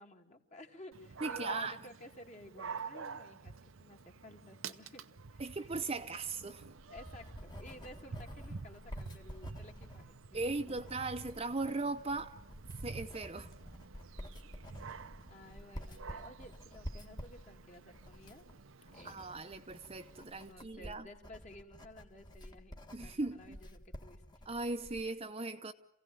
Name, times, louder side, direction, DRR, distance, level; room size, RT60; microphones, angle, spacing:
voice 1, 0.0-3.5 3.8-5.6 6.9-11.3 14.7-14.9 15.3-18.4 18.9-19.3 20.5-22.7 23.0-24.2, left 1 dB, 35° left, 2.4 m, -54 dB
Dog, 0.9-20.5, right 4 dB, 85° right, 0.9 m, -49 dB
voice 2, 1.2-1.8 5.4-6.6 10.3-12.4 12.8-13.5 19.0-21.1 22.9-23.6 24.5-25.7, right 3 dB, 30° right, 0.8 m, -38 dB
Writing, 6.5-25.1, equal, 20° left, 1.6 m, -50 dB
27.5 x 16.5 x 7.8 m
head